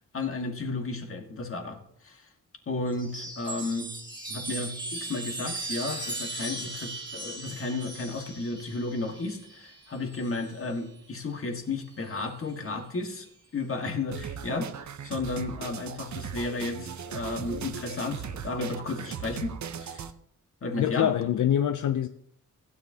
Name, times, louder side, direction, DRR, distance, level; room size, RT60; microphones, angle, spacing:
voice 1, 0.1-1.8 2.0-2.3 2.7-3.9 4.3-20.1 20.6-21.1, left 3 dB, 40° left, 4 dB, 1.6 m, -33 dB
Chime, 2.9-10.7 11.9-12.6, right 2 dB, 15° right, 1.7 m, -38 dB
sound 1, 14.1-20.1, right 7 dB, 60° right, 0.7 m, -38 dB
voice 2, 20.8-22.1, left 10 dB, 70° left, 9 dB, 0.5 m, -24 dB
16.0 x 9.6 x 2.8 m, 0.67 s
wide cardioid pair, 130°, 32 cm